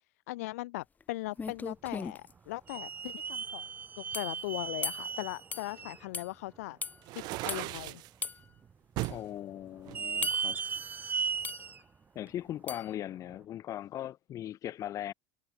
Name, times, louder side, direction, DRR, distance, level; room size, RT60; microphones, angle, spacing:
voice 1, 0.3-3.7 4.0-6.8 7.1-8.0, left 20 dB, 90° left, 1.4 m, -39 dB
sound 1, 1.0-1.1 1.4-2.3 4.1-4.4 4.8-5.1 5.5-5.7 6.1-6.3 6.8-7.0 7.5-7.7 8.2-8.4 9.0-9.1 10.2-10.5 11.4-11.7 12.7-12.9, left 5 dB, 20° left, 3.7 m, -37 dB
sound 2, 1.9-2.0 2.7-6.1 6.6-6.7 7.3-7.4 8.2-8.7 9.0-9.1 9.8-11.8 12.3-12.4 13.3-13.4, right 6 dB, 25° right, 0.6 m, -36 dB
sound 3, 7.0-8.1 9.0-9.2 9.9-10.9, right 20 dB, 60° right, 2.4 m, -37 dB
voice 2, 9.1-10.6 12.1-15.1, left 12 dB, 45° left, 0.7 m, -39 dB
supercardioid pair, 115°, 8 cm